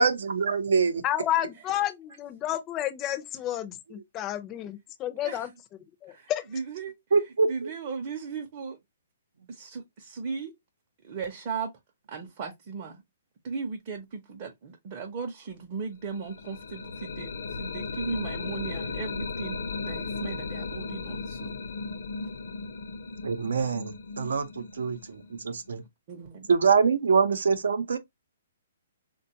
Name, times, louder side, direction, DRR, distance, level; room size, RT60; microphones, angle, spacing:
voice 1, 0.0-1.0 7.1-7.7 23.2-25.2 25.7-25.8 26.5-28.0, right 5 dB, 90° right, 0.6 m, -24 dB
voice 2, 1.0-5.5 6.0-6.4, left 12 dB, 20° left, 0.4 m, -30 dB
voice 3, 6.1-6.9 7.5-8.8 9.5-10.5 11.0-11.7 12.1-13.0 13.4-21.5 24.1-24.3 26.1-26.5, right 5 dB, 35° right, 0.6 m, -37 dB
sound 1, 16.1-25.9, left 4 dB, 75° left, 0.6 m, -36 dB
3.6 x 2.2 x 2.7 m
hypercardioid pair, 165°, 0 cm